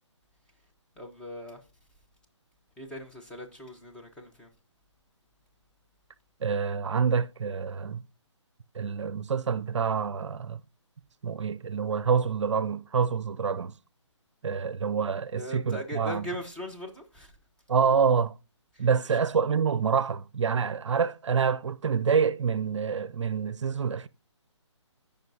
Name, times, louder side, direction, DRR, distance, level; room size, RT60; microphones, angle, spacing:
voice 1, 1.0-1.6 2.8-4.5 15.3-17.3 18.7-19.2, equal, 5° left, 0.9 m, -39 dB
voice 2, 6.4-8.0 8.7-10.6 11.2-13.7 14.4-16.2 17.7-18.3 18.8-24.1, right 6 dB, 70° right, 0.5 m, -27 dB
14.0 x 5.2 x 2.7 m
hypercardioid pair, 150°, 16 cm